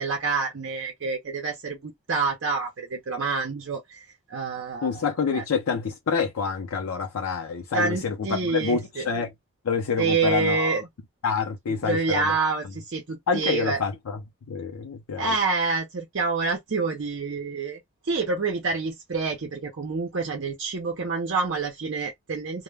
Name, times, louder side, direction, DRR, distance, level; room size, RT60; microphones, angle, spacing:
voice 1, 0.0-4.0 4.3-4.9 5.2-5.4 7.7-9.1 10.0-10.9 11.8-13.8 15.2-17.8 18.0-22.6, right 4 dB, 60° right, 0.6 m, -27 dB
voice 2, 4.8-9.3 9.6-10.8 11.2-12.4 13.3-14.2 14.5-15.4, left 5 dB, 90° left, 0.5 m, -27 dB
2.1 x 2.1 x 3.2 m
head